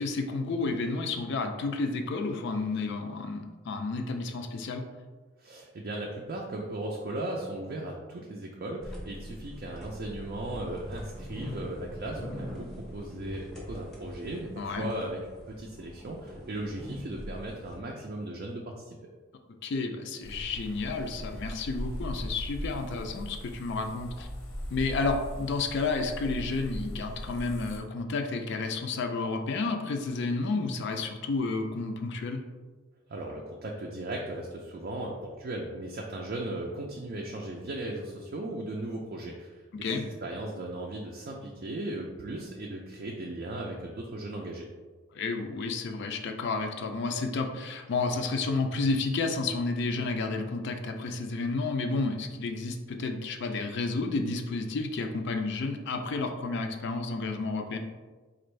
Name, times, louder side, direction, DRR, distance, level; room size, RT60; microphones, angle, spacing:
voice 1, 0.0-4.8 14.6-14.9 19.6-24.3 24.7-32.4 39.8-40.1 45.1-57.8, left 3 dB, 55° left, 5 dB, 0.4 m, -31 dB
voice 2, 5.4-15.2 15.5-19.0 33.1-44.7, right 1 dB, 45° right, -1 dB, 0.4 m, -37 dB
sound 1, 8.8-17.8, equal, ahead, 0.6 m, -43 dB
sound 2, 20.2-27.8, equal, 85° left, 0.8 m, -39 dB
4.3 x 2.5 x 3.1 m, 1.3 s
head